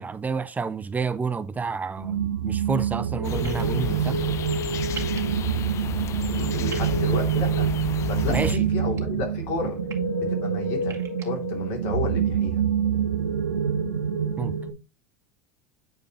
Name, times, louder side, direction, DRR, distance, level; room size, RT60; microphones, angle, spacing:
voice 1, 0.0-4.2 8.3-8.7 14.4-14.6, right 5 dB, 20° right, 0.6 m, -29 dB
sound 1, 2.0-14.7, right 7 dB, 85° right, 0.9 m, -26 dB
sound 2, 3.2-8.5, left 10 dB, 35° left, 0.5 m, -32 dB
sound 3, 3.4-3.6 5.0-5.2 6.7-6.9 8.4-9.0 9.7-10.0 10.8-11.3, right 7 dB, 35° right, 2.0 m, -39 dB
voice 2, 6.3-7.7 8.1-9.8 10.2-12.6, left 4 dB, 60° left, 3.3 m, -32 dB
9.3 x 4.9 x 3.1 m
hypercardioid pair, 80°, 8 cm